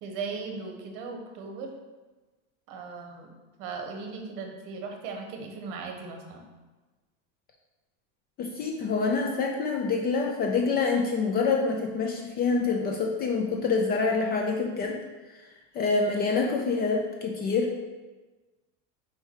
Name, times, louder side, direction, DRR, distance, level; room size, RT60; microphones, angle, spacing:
voice 1, 0.0-1.7 2.7-3.3 3.6-6.4, right 4 dB, 55° right, 3 dB, 1.1 m, -37 dB
voice 2, 8.4-15.0 15.3-15.4 15.7-17.7, left 4 dB, 25° left, 1 dB, 0.3 m, -26 dB
4.9 x 4.4 x 4.5 m, 1.2 s
supercardioid pair, 145°, 40 cm